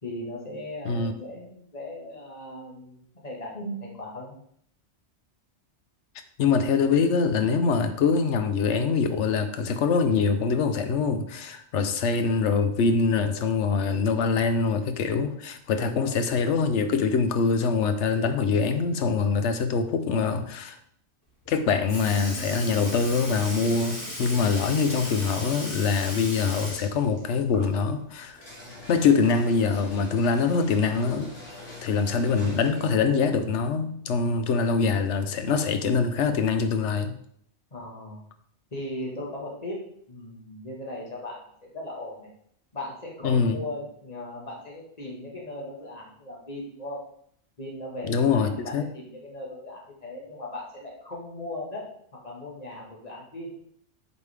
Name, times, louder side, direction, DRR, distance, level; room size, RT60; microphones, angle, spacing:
voice 1, 0.0-4.4 15.8-16.2 37.7-38.2 38.7-39.8 40.1-42.3 42.7-47.0 47.6-51.8 52.2-53.5, left 1 dB, 35° left, -2 dB, 1.8 m, -38 dB
voice 2, 6.4-20.8 21.5-28.4 28.9-31.3 31.8-37.2 43.2-43.6 48.1-48.9, left 5 dB, 80° left, 9 dB, 1.0 m, -24 dB
Sink (filling or washing) / Liquid, 21.4-21.6 21.9-28.0 28.3-28.4 30.0-30.1 31.0-31.1 31.9-32.1 33.0-33.1, equal, 15° left, 1.8 m, -37 dB
sound 1, 28.3-33.1, left 2 dB, 60° left, 2.3 m, -44 dB
8.3 x 5.2 x 3.5 m, 0.66 s
omnidirectional pair, 1.2 m